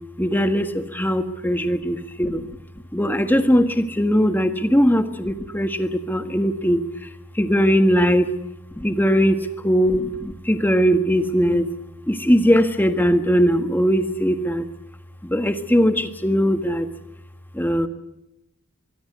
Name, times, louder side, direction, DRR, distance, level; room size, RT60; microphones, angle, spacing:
voice 1, 0.2-2.5 2.9-7.1 7.3-8.3 8.7-11.7 12.1-14.6 15.2-16.9 17.5-17.9, equal, 10° left, 8 dB, 1.5 m, -20 dB
23.5 x 23.0 x 8.1 m, 0.90 s
head